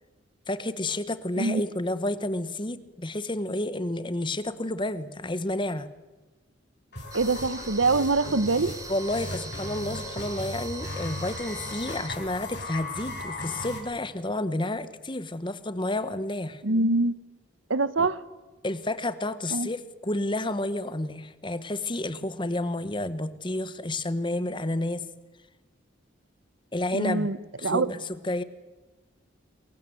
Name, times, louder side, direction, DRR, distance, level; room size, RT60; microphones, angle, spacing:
voice 1, 0.5-5.9 8.9-16.6 18.0-18.1 18.6-25.0 26.7-27.3 27.6-28.4, left 1 dB, 25° left, 13 dB, 1.2 m, -30 dB
sound 1, 6.9-13.8, left 2 dB, 55° left, 7.0 m, -37 dB
sound 2, 7.1-12.1, right 4 dB, 15° right, 2.0 m, -42 dB
voice 2, 7.1-8.7 16.6-17.1 17.7-18.2 19.5-19.7 26.9-27.4 27.6-27.9, right 3 dB, 80° right, 16 dB, 1.1 m, -24 dB
27.5 x 22.0 x 7.9 m, 1.2 s
head